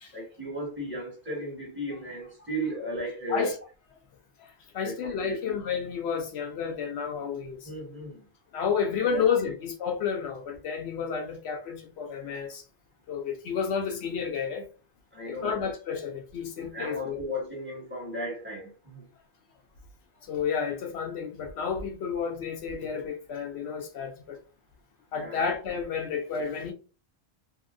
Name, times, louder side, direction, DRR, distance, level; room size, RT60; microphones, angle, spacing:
voice 1, 0.1-3.5 4.8-5.4 7.6-8.2 9.0-9.2 15.1-15.7 16.7-19.0 25.1-25.4, equal, 10° right, 1.4 m, -35 dB
voice 2, 4.4-7.7 8.5-12.6 13.1-14.7 15.3-17.2 20.2-24.4 25.1-26.7, left 6 dB, 75° left, 0.8 m, -31 dB
2.8 x 2.7 x 2.4 m
omnidirectional pair, 1.1 m